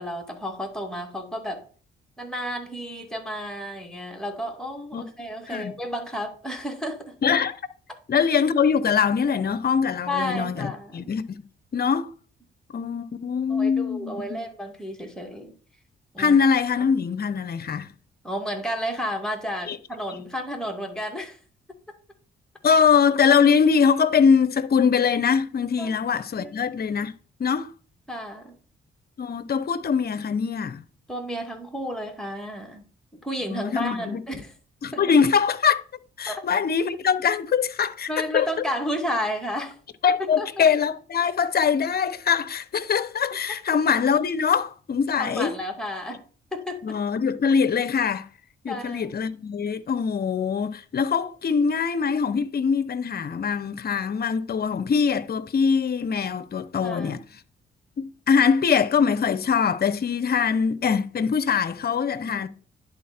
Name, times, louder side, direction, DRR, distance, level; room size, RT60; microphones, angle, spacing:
voice 1, 0.0-1.7 2.2-7.2 10.1-11.1 13.5-15.5 16.1-16.4 18.2-21.4 25.8-25.9 26.4-26.6 28.1-28.6 31.1-32.8 33.2-34.5 34.9-35.2 36.3-36.4 38.1-39.8 40.2-40.7 45.2-46.2 46.5-47.0 48.7-49.1 56.8-57.2 62.2-62.5, equal, 5° left, 2.4 m, -32 dB
voice 2, 7.2-7.5 8.1-11.4 11.7-12.1 12.7-14.4 16.2-17.9 19.7-19.8 22.6-27.1 27.4-27.7 29.2-30.8 33.5-34.2 34.8-35.8 36.2-38.5 40.0-45.5 46.8-48.3 48.6-57.2 58.0-62.5, left 6 dB, 45° left, 0.8 m, -23 dB
11.0 x 4.1 x 4.3 m
supercardioid pair, 55°, 21 cm